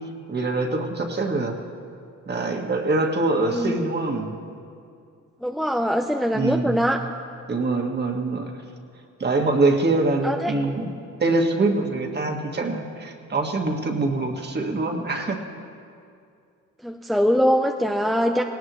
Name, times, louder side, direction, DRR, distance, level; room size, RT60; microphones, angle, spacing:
voice 1, 0.3-1.6 2.3-4.3 6.3-6.8 7.5-8.5 9.2-10.9 11.2-15.4, right 2 dB, 35° right, 3 dB, 1.8 m, -24 dB
voice 2, 5.4-7.0 10.2-10.5 16.8-18.4, equal, ahead, 3 dB, 0.7 m, -22 dB
18.5 x 18.0 x 3.1 m, 2.4 s
cardioid pair, 90°, 30 cm